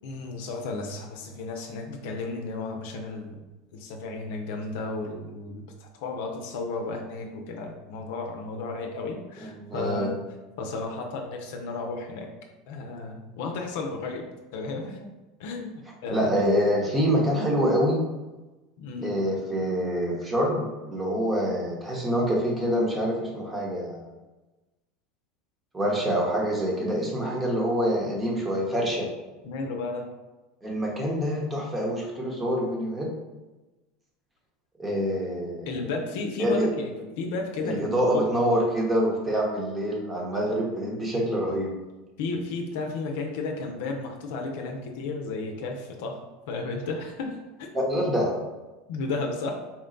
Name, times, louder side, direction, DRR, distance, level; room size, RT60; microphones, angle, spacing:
voice 1, 0.0-3.4 3.7-10.2 10.6-12.3 12.7-14.3 14.5-15.1 15.4-16.5 18.8-19.2 29.4-30.1 35.7-38.3 40.5-40.6 42.2-48.1 48.9-49.5, left 3 dB, 70° left, 2 dB, 0.6 m, -33 dB
voice 2, 9.4-10.1 16.1-18.1 19.0-24.1 25.7-29.1 30.6-33.1 34.8-35.9 36.4-36.7 37.6-41.8 47.7-48.3, equal, 15° right, -2 dB, 1.0 m, -26 dB
4.2 x 2.2 x 3.8 m, 1.1 s
supercardioid pair, 125°, 0 cm